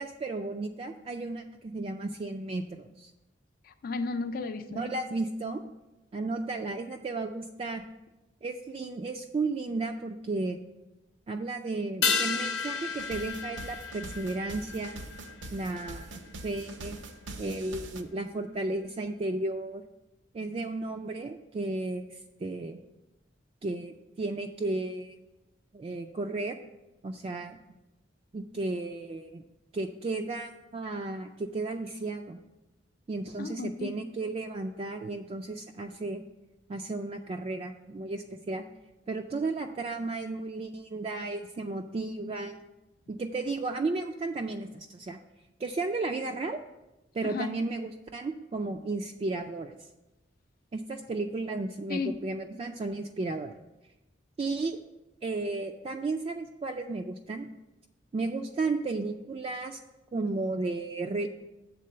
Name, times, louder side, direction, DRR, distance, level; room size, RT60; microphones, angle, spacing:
voice 1, 0.0-3.1 4.7-5.6 6.1-7.8 8.4-10.6 11.3-15.0 15.5-17.0 17.4-19.8 20.3-22.8 23.6-25.2 25.7-26.6 27.0-27.6 28.3-29.4 29.7-32.4 33.1-36.2 36.7-38.6 39.1-42.6 43.1-45.2 45.6-46.6 47.1-49.7 50.7-53.5 54.4-54.8 55.2-57.5 58.1-59.8 60.1-61.3, right 3 dB, 35° right, 4 dB, 0.3 m, -34 dB
voice 2, 3.6-4.9 33.4-33.9 47.2-47.5 51.9-52.1, left 4 dB, 50° left, 8 dB, 0.4 m, -33 dB
sound 1, 12.0-16.7 17.0-17.1, left 6 dB, 75° left, 0.8 m, -33 dB
sound 2, 12.2-12.3 12.6-18.0, right 2 dB, 80° right, 0.6 m, -44 dB
7.5 x 3.8 x 6.6 m, 1.0 s
head